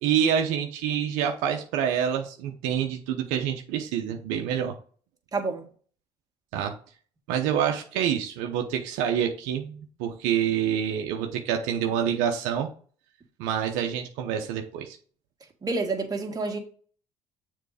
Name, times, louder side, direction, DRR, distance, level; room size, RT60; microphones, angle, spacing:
voice 1, 0.0-4.8 6.5-6.7 7.3-12.7 13.4-15.0, right 9 dB, 90° right, 4 dB, 0.9 m, -27 dB
voice 2, 5.3-5.7 15.6-16.6, right 3 dB, 30° right, 2 dB, 1.9 m, -28 dB
6.8 x 3.9 x 4.9 m, 0.43 s
supercardioid pair, 80°, 12 cm